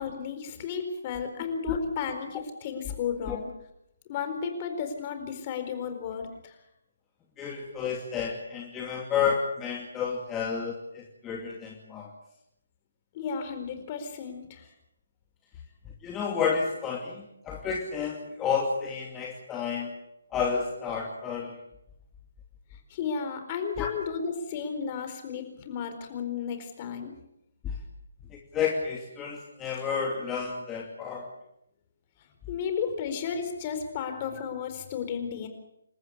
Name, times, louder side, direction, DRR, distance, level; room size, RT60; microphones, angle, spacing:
voice 1, 0.0-3.5 4.1-6.6 13.1-14.7 22.7-27.1 32.5-35.5, left 6 dB, 30° left, 8 dB, 4.3 m, -33 dB
voice 2, 7.4-12.1 16.0-19.9 20.3-21.6 23.8-23.9 27.6-27.7 28.3-31.3, left 6 dB, 15° left, -1 dB, 2.7 m, -31 dB
27.5 x 14.5 x 8.4 m, 0.81 s
figure-of-eight pair, 145°, 0 cm